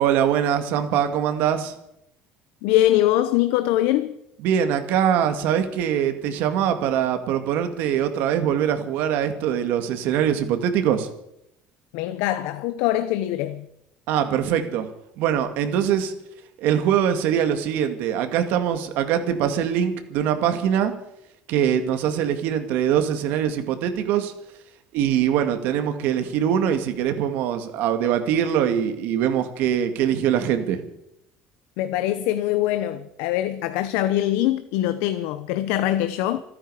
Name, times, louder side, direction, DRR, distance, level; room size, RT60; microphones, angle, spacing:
voice 1, 0.0-1.7 4.4-11.1 14.1-14.9 15.2-16.1 16.6-20.9 21.5-24.3 24.9-30.8, right 9 dB, 65° right, 2.2 m, -23 dB
voice 2, 2.6-4.2 11.9-13.7 31.8-36.4, left 13 dB, 80° left, 0.9 m, -23 dB
27.5 x 10.0 x 5.0 m
cardioid pair, 155°, 4 cm